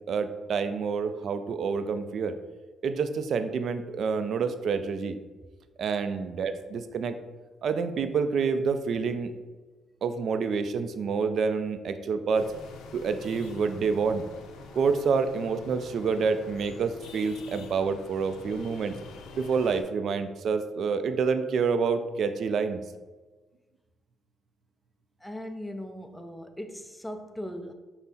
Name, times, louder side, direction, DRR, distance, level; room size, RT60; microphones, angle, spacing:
voice 1, 0.1-2.3 2.8-5.2 5.8-7.2 7.6-9.3 10.0-12.5 12.9-14.2 14.7-18.9 19.4-22.8, right 5 dB, 60° right, 9 dB, 0.3 m, -28 dB
sound 1, 12.3-19.8, left 4 dB, 85° left, 0.5 m, -46 dB
voice 2, 25.2-27.7, equal, 5° left, 6 dB, 0.4 m, -39 dB
5.5 x 2.0 x 4.1 m, 1.3 s
cardioid pair, 90°, 0 cm